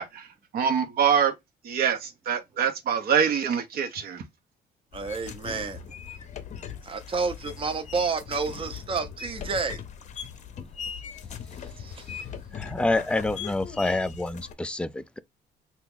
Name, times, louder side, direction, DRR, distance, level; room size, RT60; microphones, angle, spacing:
voice 1, 0.0-1.3 1.6-4.2, right 7 dB, 65° right, 0.9 m, -25 dB
sound 1, 4.9-14.5, left 7 dB, 45° left, 0.6 m, -40 dB
voice 2, 4.9-5.8 6.8-9.8 11.8-12.1, right 4 dB, 30° right, 0.7 m, -30 dB
voice 3, 12.5-15.2, left 2 dB, 5° left, 0.3 m, -27 dB
2.8 x 2.4 x 3.6 m
cardioid pair, 110°, 17 cm